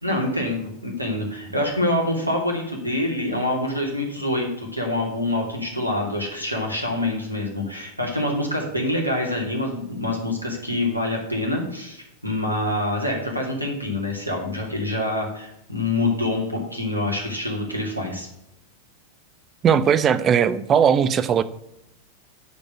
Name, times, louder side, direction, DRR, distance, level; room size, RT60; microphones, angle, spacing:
voice 1, 0.0-18.3, left 1 dB, 85° right, 0 dB, 2.7 m, -26 dB
voice 2, 19.6-21.4, right 7 dB, 25° right, 15 dB, 0.6 m, -18 dB
9.4 x 5.3 x 7.7 m, 0.82 s
figure-of-eight pair, 90°, 0 cm